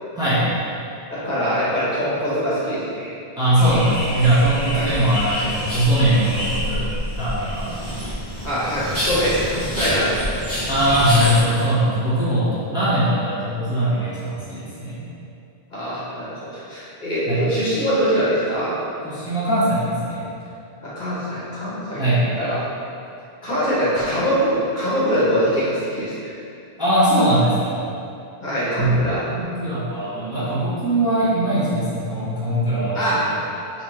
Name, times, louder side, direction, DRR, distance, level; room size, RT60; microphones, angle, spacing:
voice 1, 1.1-3.1 4.7-4.8 8.4-10.6 15.7-18.7 20.8-22.6 23.4-26.3 28.4-29.2 32.9-33.2, equal, 50° left, -10 dB, 1.3 m, -23 dB
voice 2, 3.4-7.7 10.7-15.0 17.3-17.5 19.0-20.3 22.0-22.2 26.8-27.9 28.8-29.0 29.3-33.3, right 1 dB, 5° right, -13 dB, 1.3 m, -20 dB
sound 1, 3.6-11.4, equal, 15° left, 1.2 m, -27 dB
4.8 x 2.9 x 3.7 m, 2.6 s
omnidirectional pair, 1.0 m